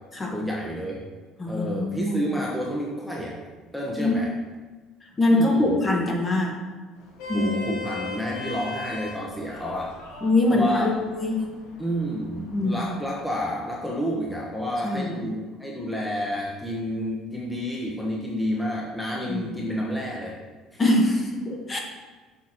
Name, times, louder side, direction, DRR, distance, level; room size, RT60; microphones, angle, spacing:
voice 1, 0.3-1.0 1.5-3.4 3.7-4.3 5.3-5.8 7.3-10.0 10.5-10.9 11.8-20.3 20.7-20.8, equal, 5° left, -3 dB, 1.1 m, -30 dB
voice 2, 1.4-2.2 4.0-4.2 5.2-6.6 7.3-7.5 10.2-11.5 12.4-12.8 14.8-15.1 19.3-19.5 20.8-21.8, left 2 dB, 20° left, 1 dB, 1.3 m, -23 dB
Vehicle horn car horn honking, 7.0-13.4, left 3 dB, 80° left, 1.6 m, -39 dB
6.5 x 4.7 x 6.0 m, 1.3 s
cardioid pair, 135°, 0 cm